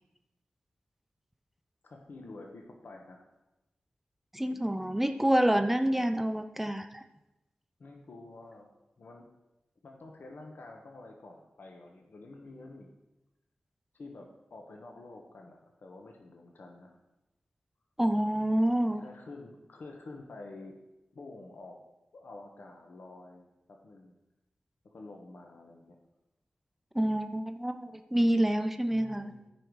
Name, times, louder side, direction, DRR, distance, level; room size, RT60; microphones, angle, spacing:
voice 1, 1.8-3.2 7.8-9.3 9.8-12.9 13.9-17.0 19.0-20.8 21.1-21.8 22.1-24.1 24.8-26.0 28.9-29.5, left 2 dB, 80° left, 2 dB, 1.2 m, -49 dB
voice 2, 4.3-7.0 18.0-19.0 26.9-29.3, right 1 dB, 5° right, 8 dB, 0.7 m, -27 dB
13.5 x 5.3 x 4.7 m, 0.96 s
wide cardioid pair, 100°, 3 cm